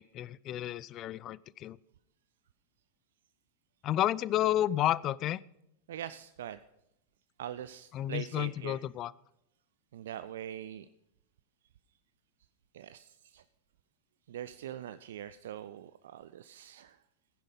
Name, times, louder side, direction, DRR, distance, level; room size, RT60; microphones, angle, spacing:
voice 1, 0.0-1.8 3.8-5.4 7.9-9.1, left 13 dB, 35° left, 22 dB, 0.4 m, -31 dB
voice 2, 5.9-6.6 7.4-8.8 9.9-10.9 12.7-13.4 14.3-17.0, right 10 dB, 60° right, 13 dB, 0.5 m, -43 dB
15.0 x 10.5 x 5.3 m, 0.83 s
figure-of-eight pair, 90°, 0 cm